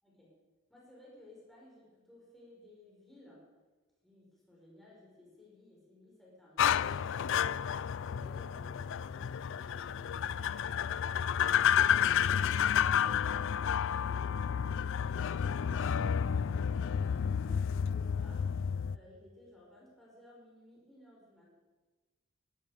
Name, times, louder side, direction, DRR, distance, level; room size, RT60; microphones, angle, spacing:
voice 1, 0.0-0.4 0.7-3.5 4.0-7.4 7.9-11.1 16.3-17.6 17.9-18.6 18.9-21.5, left 1 dB, ahead, -6 dB, 5.4 m, -58 dB
sound 1, 6.6-19.0, left 8 dB, 65° left, 0.4 m, -30 dB
16.5 x 14.0 x 5.2 m, 1.2 s
head